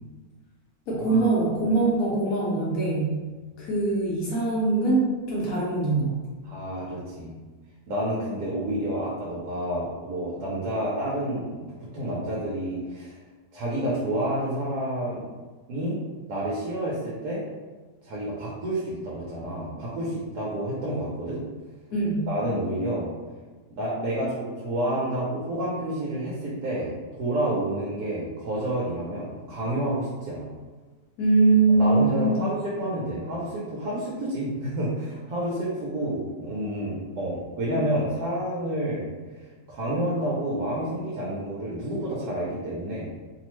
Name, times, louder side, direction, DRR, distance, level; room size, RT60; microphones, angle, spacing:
voice 1, 0.9-3.1 3.6-6.1 21.9-22.3 31.2-32.4, right 3 dB, 65° left, -5 dB, 0.9 m, -22 dB
voice 2, 6.4-7.4 7.9-13.2 13.5-15.2 15.7-16.0 16.3-17.4 18.0-21.4 22.3-23.1 23.7-30.5 31.7-39.1 39.7-43.1, right 1 dB, 75° right, -6 dB, 1.1 m, -29 dB
3.0 x 2.0 x 3.0 m, 1.3 s
omnidirectional pair, 1.9 m